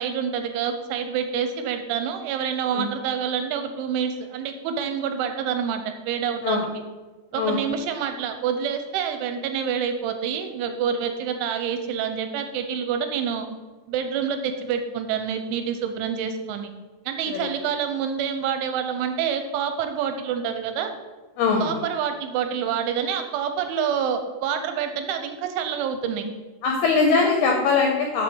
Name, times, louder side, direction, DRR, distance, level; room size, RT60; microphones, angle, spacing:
voice 1, 0.0-6.7 7.3-13.5 13.9-16.7 17.1-20.9 21.6-26.2, right 7 dB, 85° right, 7 dB, 3.0 m, -27 dB
voice 2, 21.4-21.8 26.6-28.2, left 4 dB, 80° left, 1 dB, 2.3 m, -21 dB
7.4 x 6.0 x 6.8 m, 1.2 s
omnidirectional pair, 5.7 m